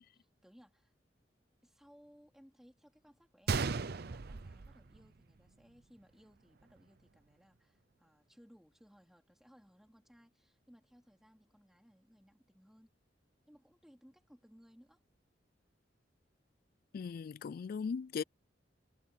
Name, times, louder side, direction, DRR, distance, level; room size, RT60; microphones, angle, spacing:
voice 1, 0.1-0.9 1.6-12.9 13.5-15.0, equal, ahead, 3.8 m, -63 dB
Gunshot gunfire, 3.5-5.5 5.8-5.9 6.6-6.8, right 4 dB, 60° right, 0.7 m, -36 dB
voice 2, 16.9-18.2, left 5 dB, 55° left, 0.3 m, -38 dB
head